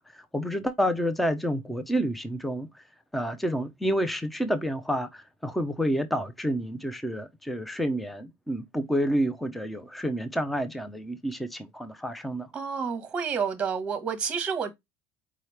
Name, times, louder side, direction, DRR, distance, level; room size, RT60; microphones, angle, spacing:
voice 1, 0.0-2.8 3.1-12.5, equal, ahead, 0.4 m, -29 dB
voice 2, 12.5-14.7, right 6 dB, 15° right, 0.9 m, -29 dB
4.7 x 2.9 x 3.1 m
cardioid pair, 180°, 8 cm